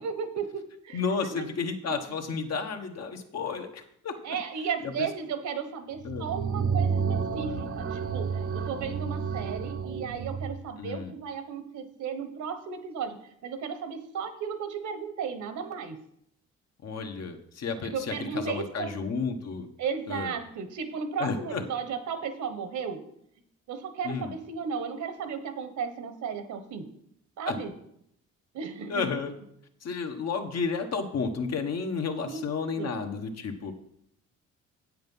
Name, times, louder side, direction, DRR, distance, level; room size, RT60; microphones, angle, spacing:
voice 1, 0.0-1.0 1.3-1.5 4.2-16.0 17.8-19.0 19.8-23.0 23.7-26.9 27.4-27.7 28.5-29.0 32.2-32.4 32.8-32.9, right 6 dB, 70° right, 9 dB, 1.2 m, -35 dB
voice 2, 0.9-4.4 4.8-5.1 6.0-6.3 10.8-11.1 16.8-19.7 20.1-20.3 21.2-21.6 24.0-24.3 27.5-27.6 28.9-29.3 29.8-33.7, left 5 dB, 55° left, 5 dB, 1.3 m, -32 dB
sound 1, 6.0-10.6, right 6 dB, 45° right, 0.8 m, -30 dB
8.3 x 7.7 x 5.5 m, 0.74 s
cardioid pair, 90°, 30 cm